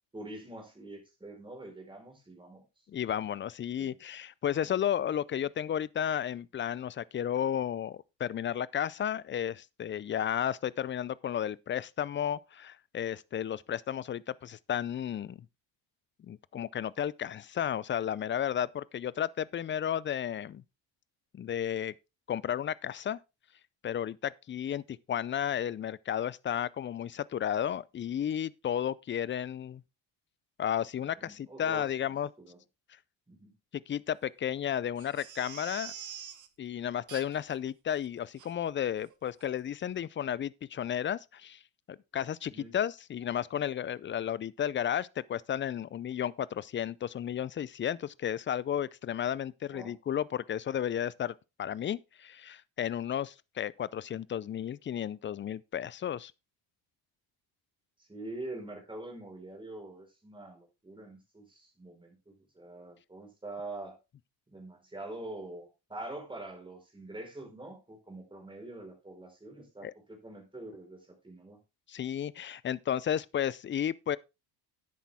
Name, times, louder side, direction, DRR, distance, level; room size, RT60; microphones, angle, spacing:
voice 1, 0.1-2.6 3.8-4.0 4.6-4.8 31.2-31.9 32.4-32.6 33.3-33.5 42.5-42.7 49.7-49.9 58.0-64.0 64.5-71.6, right 2 dB, 10° right, 4.5 m, -45 dB
voice 2, 2.9-15.4 16.2-20.6 21.3-21.9 22.3-23.2 23.8-29.8 30.6-32.3 33.9-35.9 36.6-41.6 41.9-56.3 69.8-69.9 71.9-74.2, left 9 dB, 25° left, 0.4 m, -33 dB
Crying sobbing, 35.0-36.5 37.1-37.6 37.9-38.0 38.4-38.5 39.0-39.1 39.4-39.5, right 9 dB, 40° right, 1.2 m, -45 dB
10.0 x 8.6 x 3.5 m
cardioid pair, 110°, 44 cm